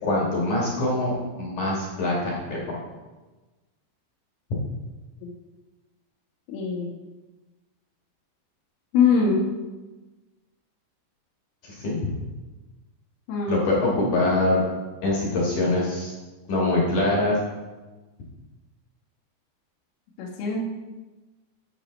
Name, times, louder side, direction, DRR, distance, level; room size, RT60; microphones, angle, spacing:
voice 1, 0.0-2.8 11.6-12.1 13.5-14.6 15.0-16.1 16.5-17.4, left 2 dB, 60° left, -4 dB, 2.1 m, -24 dB
voice 2, 6.5-6.9 8.9-9.5 13.3-14.2 20.2-20.6, left 5 dB, 85° left, -2 dB, 3.9 m, -23 dB
13.5 x 6.4 x 3.1 m, 1.2 s
omnidirectional pair, 5.5 m